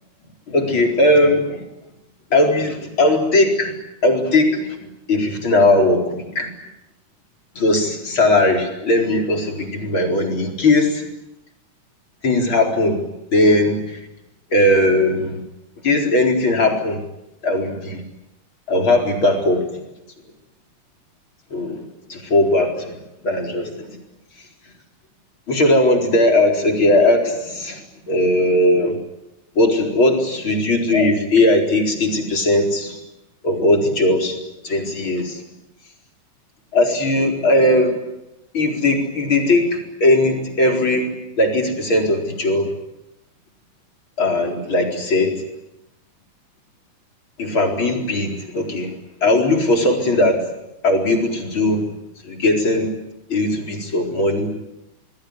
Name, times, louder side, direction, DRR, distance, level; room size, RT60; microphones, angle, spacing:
voice 1, 0.5-1.6 2.3-3.7 4.0-4.8 5.1-6.5 7.5-11.1 12.2-14.0 14.5-15.4 15.8-17.0 17.4-18.0 18.7-19.8 21.5-23.0 23.2-24.0 25.5-27.8 28.1-29.0 29.5-33.0 33.4-34.4 34.6-35.4 36.7-38.0 38.5-42.7 44.2-45.4 47.4-50.4 50.8-51.8 52.2-52.9 53.3-54.5, left 1 dB, 40° left, 2 dB, 5.0 m, -18 dB
27.5 x 21.0 x 9.8 m, 0.90 s
omnidirectional pair, 3.4 m